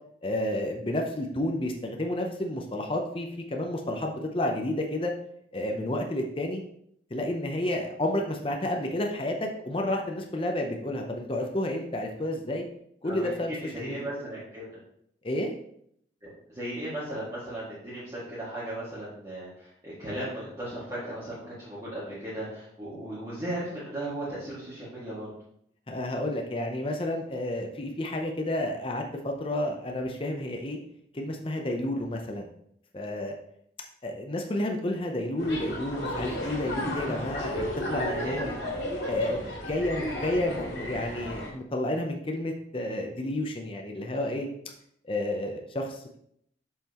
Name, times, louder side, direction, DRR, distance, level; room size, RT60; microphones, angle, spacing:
voice 1, 0.2-5.1 5.5-6.6 7.1-12.6 13.0-14.0 15.2-15.5 25.9-30.8 31.1-32.5 32.9-33.3 34.0-38.5 39.1-44.5 45.1-46.2, left 1 dB, 30° left, 2 dB, 0.6 m, -31 dB
voice 2, 13.0-14.7 16.2-25.3 37.6-38.6, right 1 dB, 20° right, -12 dB, 2.0 m, -36 dB
sound 1, 35.4-41.5, left 1 dB, 70° left, 2.0 m, -33 dB
7.2 x 5.6 x 2.9 m, 0.70 s
head